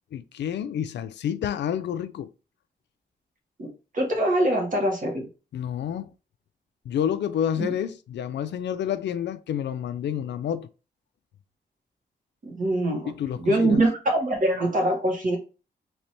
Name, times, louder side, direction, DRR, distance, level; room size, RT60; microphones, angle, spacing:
voice 1, 0.1-2.3 5.5-6.1 6.9-10.7 13.1-13.8, left 9 dB, 90° left, 0.4 m, -29 dB
voice 2, 3.9-5.2 7.6-7.7 12.4-13.1 13.4-15.4, right 1 dB, 50° right, 1.6 m, -23 dB
3.3 x 2.9 x 4.3 m
wide cardioid pair, 140°, 18 cm